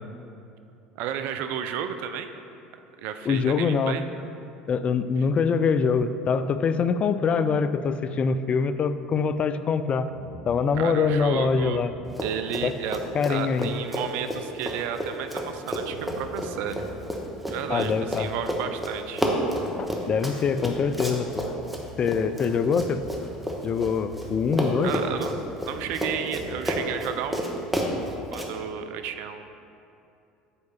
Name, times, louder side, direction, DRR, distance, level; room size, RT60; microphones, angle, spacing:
voice 1, 1.0-2.3 3.0-4.0 10.7-11.8 12.2-13.0 13.3-16.8 17.5-19.2 24.8-25.4 25.7-27.5 28.3-29.5, right 8 dB, 55° right, 8 dB, 0.3 m, -32 dB
voice 2, 3.3-4.0 4.7-10.1 10.5-11.9 12.6-12.7 13.1-13.7 17.7-18.3 19.8-21.5 22.0-23.0 23.6-25.0, left 5 dB, 35° left, 12 dB, 0.3 m, -24 dB
sound 1, 10.1-13.1 13.6-13.7 14.1-14.5 15.9-17.3 17.6-19.3 19.6-28.2, equal, 85° right, 1.0 m, -46 dB
Run, 12.1-12.7 12.9-24.3 24.5-28.5, equal, 5° right, 1.0 m, -30 dB
6.9 x 4.7 x 4.1 m, 2.7 s
figure-of-eight pair, 65°, 4 cm